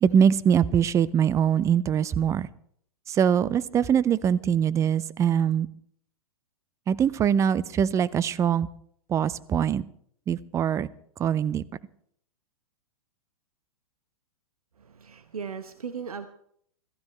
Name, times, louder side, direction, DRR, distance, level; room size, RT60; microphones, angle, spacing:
voice 1, 0.0-2.5 3.1-5.7 6.9-8.7 9.1-9.8 10.3-10.9 11.2-11.6, right 8 dB, 15° right, 19 dB, 0.5 m, -23 dB
voice 2, 14.8-16.3, right 6 dB, 75° right, 9 dB, 1.1 m, -37 dB
25.5 x 15.0 x 3.2 m, 0.65 s
figure-of-eight pair, 110°, 19 cm